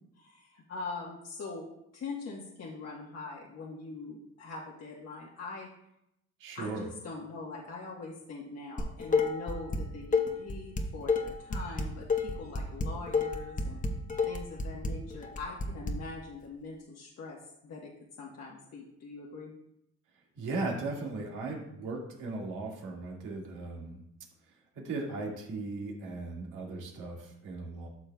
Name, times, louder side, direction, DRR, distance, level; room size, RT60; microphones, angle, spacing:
voice 1, 0.1-1.6 1.9-5.7 6.5-13.8 14.3-17.4 17.6-17.9 18.2-19.5, left 3 dB, 55° left, -3 dB, 1.3 m, -42 dB
voice 2, 6.4-6.9 20.4-24.0 24.7-27.9, right 3 dB, 85° right, -1 dB, 2.0 m, -37 dB
Dishes pots and pans, 8.8-9.8 10.1-15.9, left 4 dB, 25° left, 0.9 m, -29 dB
12.0 x 6.5 x 2.3 m, 0.80 s
cardioid pair, 90°, 30 cm